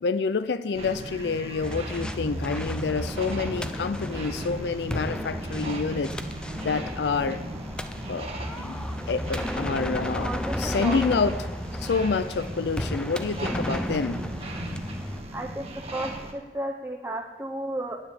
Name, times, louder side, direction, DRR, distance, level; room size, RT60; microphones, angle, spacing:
voice 1, 0.0-6.2 6.6-7.4 8.1-8.3 8.6-8.8 9.1-11.5 11.8-14.2, left 4 dB, 75° left, 13 dB, 0.4 m, -28 dB
sound 1, 0.7-16.3, right 1 dB, 35° right, 1.3 m, -37 dB
sound 2, 1.6-15.2, equal, 5° left, 0.4 m, -34 dB
voice 2, 10.2-11.0 15.3-18.0, right 1 dB, 15° right, 0 dB, 0.8 m, -33 dB
9.8 x 9.0 x 6.9 m, 1.2 s
head